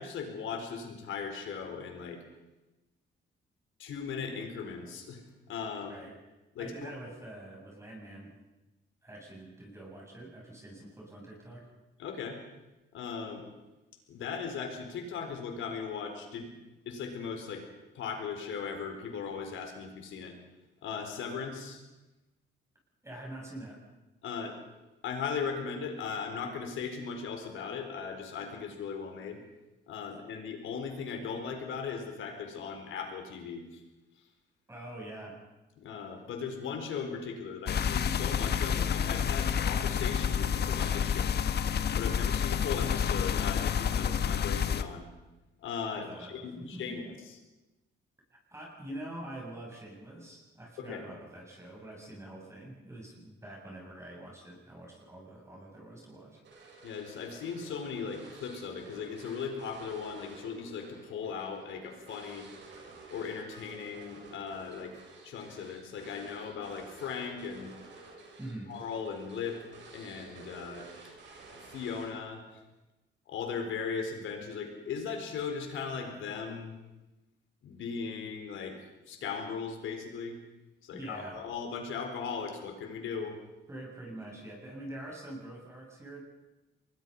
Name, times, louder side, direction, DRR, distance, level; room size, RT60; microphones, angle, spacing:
voice 1, 0.0-2.2 3.8-6.0 6.5-6.9 12.0-12.4 12.9-13.5 14.1-16.5 16.9-17.7 17.9-20.3 20.8-21.8 24.2-24.6 25.0-29.4 29.9-33.8 35.8-41.4 42.0-45.1 45.6-47.3 50.8-51.0 56.8-62.5 63.1-65.0 65.2-67.7 68.7-69.7 69.9-70.9 71.7-72.4 73.3-76.8 77.6-78.8 79.1-80.4 80.8-83.4, left 6 dB, 80° left, 5 dB, 4.4 m, -38 dB
voice 2, 6.6-8.3 9.0-11.7 23.0-23.8 34.7-35.4 45.9-47.1 48.5-56.4 68.4-68.7 80.9-81.4 83.7-86.2, right 1 dB, 15° right, -2 dB, 7.8 m, -45 dB
sound 1, 37.7-44.8, left 7 dB, 55° left, 1.3 m, -29 dB
sound 2, 56.4-72.4, right 3 dB, 65° right, 7.2 m, -51 dB
24.5 x 21.0 x 5.5 m, 1.0 s
cardioid pair, 90°, 20 cm